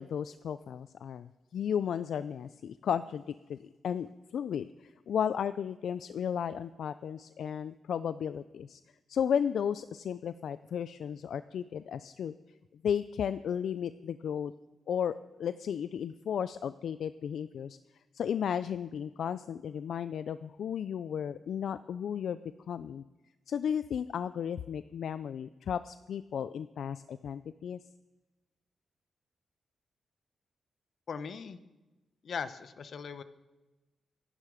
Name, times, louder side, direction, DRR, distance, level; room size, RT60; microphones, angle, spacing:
voice 1, 0.0-3.6 3.8-8.8 9.1-12.3 12.8-14.5 14.9-17.8 18.1-22.4 22.7-23.0 23.5-27.8, left 8 dB, 80° left, 14 dB, 0.4 m, -34 dB
voice 2, 31.1-31.6 32.2-33.2, left 6 dB, 60° left, 12 dB, 1.0 m, -39 dB
25.0 x 11.5 x 5.0 m, 1.1 s
cardioid pair, 105°, 0 cm